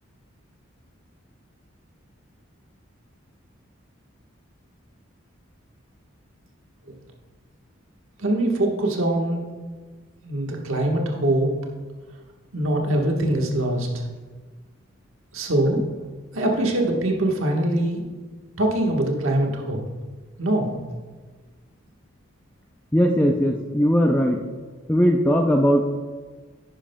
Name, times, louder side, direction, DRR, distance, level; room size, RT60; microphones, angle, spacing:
voice 1, 8.2-9.5 10.2-11.5 12.5-14.1 15.3-15.8 16.3-18.0 18.6-19.8 20.4-20.8, right 1 dB, 80° right, 0 dB, 1.3 m, -23 dB
voice 2, 22.9-24.4 24.9-25.8, equal, 10° left, 2 dB, 0.4 m, -19 dB
10.5 x 10.0 x 2.2 m, 1.4 s
head